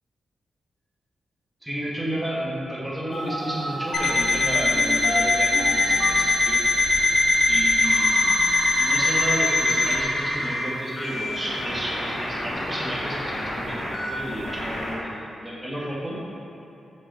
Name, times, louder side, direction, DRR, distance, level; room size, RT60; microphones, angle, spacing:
voice 1, 1.6-6.7 7.5-8.2 8.8-16.2, equal, 5° right, -6 dB, 1.6 m, -32 dB
sound 1, 3.1-4.0 4.7-6.1 6.8-10.7 11.0-15.0, equal, 40° left, 1.4 m, -28 dB
Alarm, 3.9-10.0, left 3 dB, 70° left, 1.4 m, -21 dB
7.7 x 6.3 x 4.3 m, 2.8 s
wide cardioid pair, 145°, 0 cm